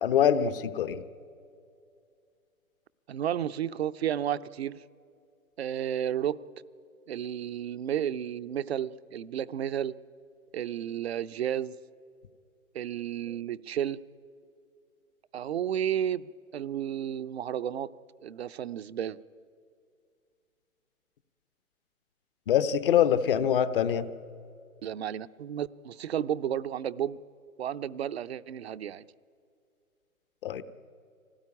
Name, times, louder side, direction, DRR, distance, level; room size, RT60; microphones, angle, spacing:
voice 1, 0.0-1.0 22.5-24.1 30.4-30.6, left 9 dB, 40° left, 13 dB, 1.0 m, -24 dB
voice 2, 3.1-4.8 5.6-6.4 7.1-9.9 10.5-11.8 12.7-14.0 15.3-17.9 18.2-19.2 24.8-27.2 27.6-29.0, right 10 dB, 45° right, 14 dB, 0.6 m, -32 dB
25.0 x 18.0 x 9.8 m, 2.4 s
figure-of-eight pair, 135°, 43 cm